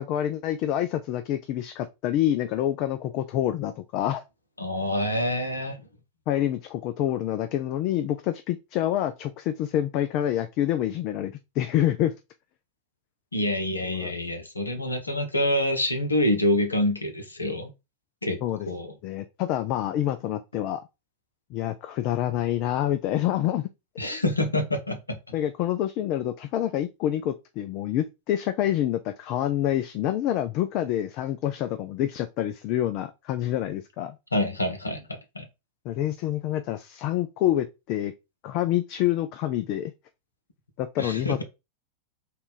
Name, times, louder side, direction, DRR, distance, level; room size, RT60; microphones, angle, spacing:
voice 1, 0.0-4.2 6.3-12.1 14.0-14.1 18.4-18.7 19.0-20.8 21.5-23.7 25.3-34.2 35.9-38.1 38.4-39.9 40.8-41.4, left 12 dB, 40° left, 0.3 m, -27 dB
voice 2, 4.6-5.8 13.3-17.7 18.2-18.4 18.7-18.9 24.0-25.0 34.3-35.5 41.0-41.4, left 1 dB, 80° left, 0.8 m, -26 dB
3.6 x 2.3 x 3.9 m
figure-of-eight pair, 90°, 0 cm